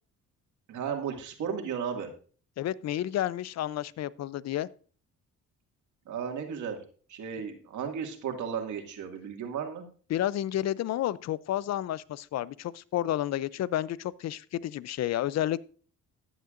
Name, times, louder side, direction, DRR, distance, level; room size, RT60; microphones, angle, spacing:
voice 1, 0.7-2.1 6.1-6.8 7.1-9.8, right 7 dB, 75° right, 2.1 m, -34 dB
voice 2, 2.6-4.7 10.1-15.6, left 12 dB, 60° left, 0.5 m, -31 dB
15.0 x 9.5 x 2.5 m
cardioid pair, 90°, 30 cm